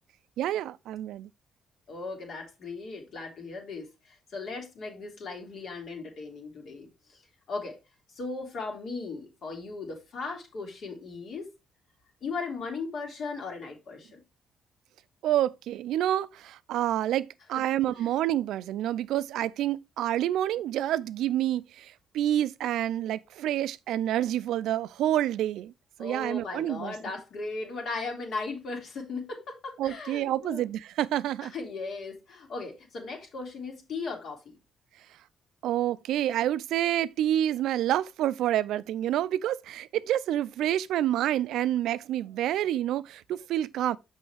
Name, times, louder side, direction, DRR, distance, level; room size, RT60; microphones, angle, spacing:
voice 1, 0.4-1.3 15.2-21.9 22.1-25.7 26.0-26.9 29.8-31.5 35.6-44.0, right 12 dB, 85° right, 0.4 m, -28 dB
voice 2, 1.9-7.2 7.5-7.8 8.1-11.5 12.2-14.2 17.9-18.1 26.0-30.7 31.4-34.5, left 4 dB, 65° left, 2.4 m, -37 dB
6.3 x 5.5 x 3.4 m
cardioid pair, 90°, 0 cm